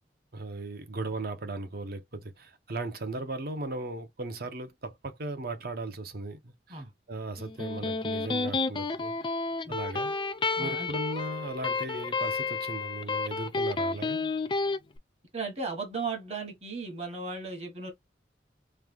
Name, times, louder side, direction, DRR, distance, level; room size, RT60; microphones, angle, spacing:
voice 1, 0.3-9.1 9.7-10.1 10.6-14.3, right 2 dB, 55° right, 0.8 m, -37 dB
Electric guitar, 7.4-14.8, left 4 dB, 25° left, 0.4 m, -31 dB
voice 2, 10.6-10.9 15.3-17.9, right 4 dB, 35° right, 1.2 m, -36 dB
3.2 x 2.3 x 3.4 m
head